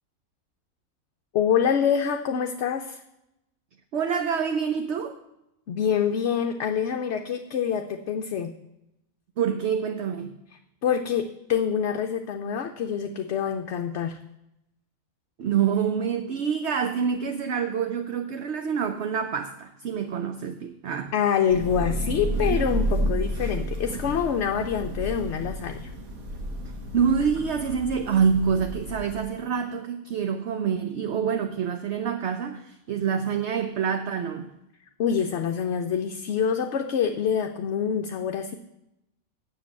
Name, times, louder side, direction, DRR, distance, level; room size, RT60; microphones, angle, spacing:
voice 1, 1.3-3.0 5.7-8.5 10.8-14.2 21.1-25.9 35.0-38.6, left 7 dB, 60° left, 0.8 m, -26 dB
voice 2, 3.9-5.2 9.4-10.4 15.4-21.1 26.9-34.5, right 7 dB, 60° right, 0.9 m, -26 dB
Thunder / Rain, 21.5-29.2, equal, 75° right, 1.8 m, -31 dB
7.4 x 6.9 x 8.1 m
omnidirectional pair, 1.5 m